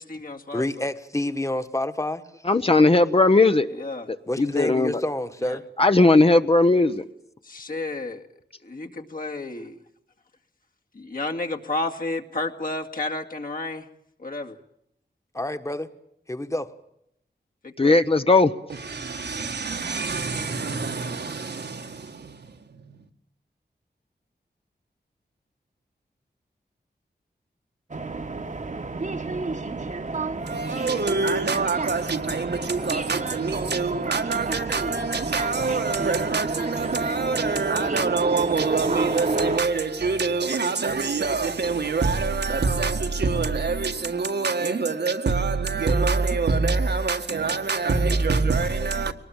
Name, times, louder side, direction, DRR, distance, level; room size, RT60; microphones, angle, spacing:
voice 1, 0.0-0.7 3.7-4.1 5.4-5.6 7.4-8.2 8.6-9.8 10.9-13.9 14.2-14.6 17.6-18.0, left 2 dB, 55° left, 2.2 m, -31 dB
voice 2, 0.5-2.4 4.3-5.6 15.3-15.9 16.3-16.7, left 1 dB, 15° left, 1.6 m, -28 dB
voice 3, 2.5-3.7 4.4-5.0 5.8-7.0 17.8-18.5, left 2 dB, 35° left, 1.0 m, -17 dB
voice 4, 18.7-23.1 30.4-49.1, right 4 dB, 75° right, 1.9 m, -25 dB
sound 1, 27.9-39.6, right 3 dB, 45° right, 1.4 m, -30 dB
23.0 x 19.5 x 8.8 m
wide cardioid pair, 70°, 18 cm